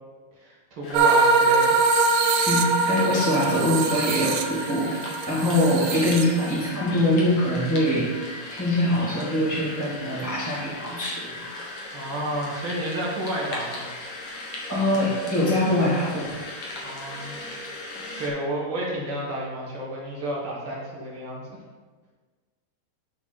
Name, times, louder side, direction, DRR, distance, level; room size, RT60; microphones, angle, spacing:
voice 1, 0.4-1.8 11.9-13.8 16.8-17.3 18.2-21.6, right 1 dB, 45° right, -5 dB, 2.0 m, -31 dB
sound 1, 0.8-18.3, left 2 dB, 60° left, 1.5 m, -38 dB
sound 2, 0.9-6.7, right 4 dB, 80° right, 1.9 m, -22 dB
voice 2, 2.5-4.9 5.3-8.1 8.5-11.4 14.7-16.3, left 1 dB, 10° left, -7 dB, 1.0 m, -23 dB
12.5 x 4.3 x 4.2 m, 1.4 s
omnidirectional pair, 4.6 m